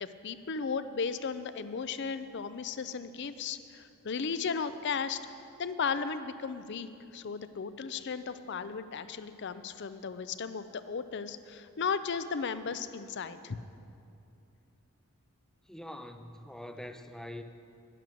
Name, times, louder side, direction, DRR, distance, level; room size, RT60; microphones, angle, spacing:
voice 1, 0.0-5.2 5.6-13.6, left 5 dB, 50° left, 12 dB, 0.5 m, -35 dB
voice 2, 15.7-17.4, left 1 dB, ahead, 7 dB, 0.5 m, -44 dB
11.0 x 11.0 x 6.2 m, 2.6 s
head